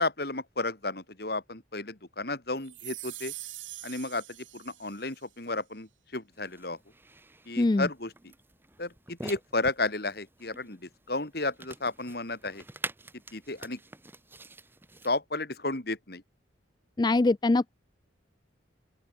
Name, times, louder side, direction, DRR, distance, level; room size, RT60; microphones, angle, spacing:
voice 1, 0.0-3.3 3.8-4.2 4.5-6.8 7.5-8.3 8.8-12.6 13.3-13.8 15.0-16.2, left 2 dB, 55° left, 2.6 m, -33 dB
sound 1, 2.6-5.2, right 16 dB, 90° right, 3.7 m, -43 dB
sound 2, 6.3-15.1, right 2 dB, 10° right, 1.1 m, -46 dB
voice 2, 7.6-7.9 17.0-17.7, left 2 dB, 20° left, 0.3 m, -23 dB
open air
head